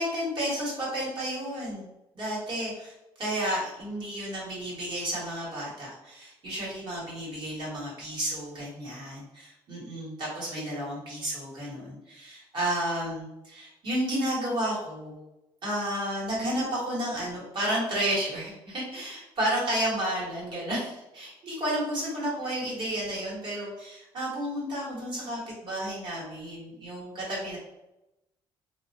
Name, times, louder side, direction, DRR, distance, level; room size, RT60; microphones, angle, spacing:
voice 1, 0.0-1.9 2.1-15.2 15.6-27.6, right 1 dB, 50° right, -6 dB, 1.4 m, -32 dB
2.5 x 2.1 x 2.7 m, 0.94 s
cardioid pair, 100°, 10 cm